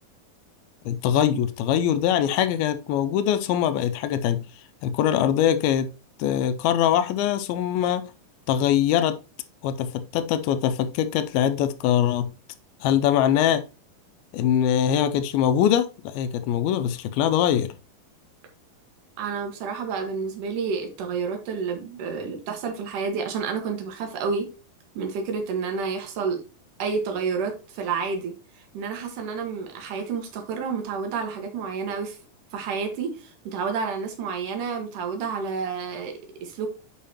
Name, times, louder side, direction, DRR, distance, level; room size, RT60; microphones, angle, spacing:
voice 1, 0.9-4.5 4.8-5.9 6.2-8.1 8.5-9.2 9.6-12.3 12.8-13.6 14.3-17.7, left 10 dB, 85° left, 2.5 m, -22 dB
voice 2, 19.2-24.5 24.9-26.4 26.8-32.2 32.5-36.7, right 5 dB, 65° right, 3.0 m, -30 dB
8.6 x 5.5 x 2.9 m
omnidirectional pair, 4.3 m